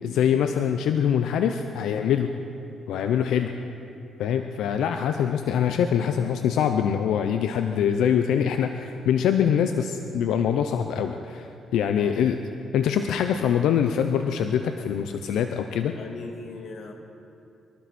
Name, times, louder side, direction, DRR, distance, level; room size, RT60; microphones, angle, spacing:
voice 1, 0.0-2.3 2.9-3.5 4.2-12.4 12.7-15.9, left 8 dB, 80° left, 7 dB, 0.6 m, -24 dB
voice 2, 11.9-12.3 15.8-16.9, left 3 dB, 60° left, 2 dB, 2.0 m, -40 dB
23.5 x 12.0 x 4.2 m, 2.7 s
cardioid pair, 90°, 0 cm